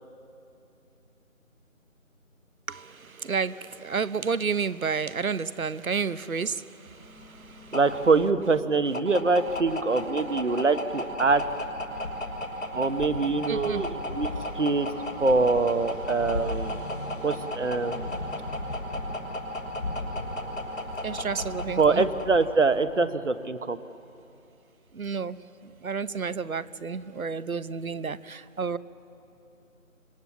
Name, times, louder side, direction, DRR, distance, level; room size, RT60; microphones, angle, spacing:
voice 1, 2.7-7.8 11.9-12.5 13.5-13.9 21.0-22.1 24.9-28.8, right 5 dB, 85° right, 16 dB, 0.9 m, -31 dB
sound 1, 7.0-23.0, left 1 dB, 65° left, 6.2 m, -34 dB
voice 2, 7.7-11.4 12.7-14.3 14.5-14.9 15.2-16.8 17.2-18.1 21.8-23.8, right 3 dB, 60° right, 11 dB, 1.3 m, -24 dB
26.0 x 23.0 x 7.4 m, 2.7 s
figure-of-eight pair, 170°, 41 cm